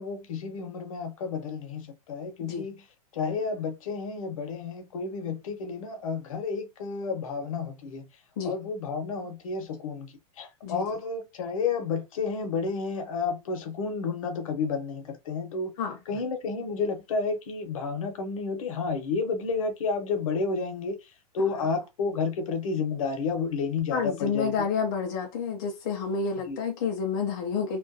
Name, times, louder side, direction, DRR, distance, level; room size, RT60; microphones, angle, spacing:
voice 1, 0.0-2.8 3.1-8.1 8.4-15.7 16.1-21.0 21.3-24.5 26.5-26.6, left 4 dB, 60° left, 0.8 m, -31 dB
voice 2, 23.9-27.8, left 5 dB, 30° left, 0.4 m, -29 dB
2.3 x 2.1 x 2.5 m
supercardioid pair, 170°, 20 cm